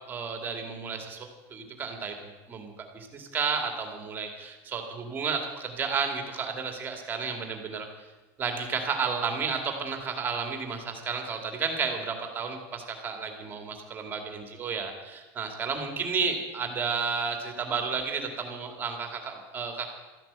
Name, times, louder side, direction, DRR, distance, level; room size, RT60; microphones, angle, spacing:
voice 1, 0.1-7.9 8.4-19.9, right 5 dB, 20° right, 4 dB, 2.4 m, -32 dB
13.5 x 11.0 x 8.8 m, 1.2 s
cardioid pair, 165°, 9 cm